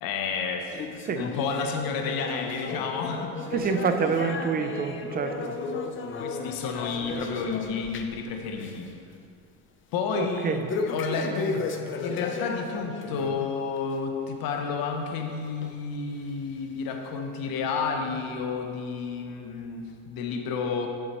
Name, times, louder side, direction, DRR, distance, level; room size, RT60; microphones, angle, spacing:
voice 1, 0.0-0.8 1.1-3.4 6.2-8.9 9.9-11.7 12.0-20.9, left 5 dB, 55° left, 3 dB, 0.8 m, -31 dB
sound 1, 0.7-8.3 8.5-8.9 9.3-9.4 10.7-13.4 13.8-14.0 14.6-14.7 15.6-15.7 16.5-16.6, left 4 dB, 30° left, 0.5 m, -34 dB
voice 2, 3.5-5.6 10.2-10.6, right 5 dB, 25° right, 7 dB, 0.4 m, -27 dB
9.7 x 7.5 x 3.0 m, 2.4 s
cardioid pair, 130°, 43 cm